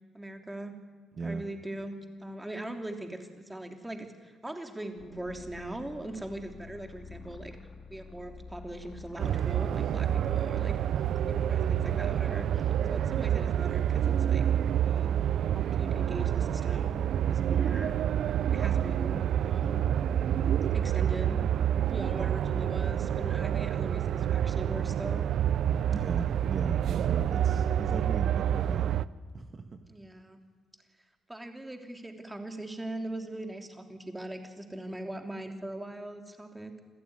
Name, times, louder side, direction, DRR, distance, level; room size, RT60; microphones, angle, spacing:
voice 1, 0.1-0.8 1.2-1.9 2.2-7.6 7.9-10.8 11.3-15.2 15.5-17.0 17.3-17.9 18.5-19.9 20.7-21.4 21.9-25.4 25.7-26.1 29.9-30.4 31.3-36.7, right 1 dB, 10° right, 4 dB, 3.1 m, -40 dB
sound 1, 5.0-13.2, left 5 dB, 50° left, 2.4 m, -48 dB
sound 2, 9.2-29.1, right 10 dB, 70° right, 0.6 m, -28 dB
voice 2, 25.9-29.0 29.3-29.8, right 4 dB, 40° right, 5 dB, 1.8 m, -37 dB
27.5 x 15.5 x 9.7 m, 1.5 s
cardioid pair, 90°, 0 cm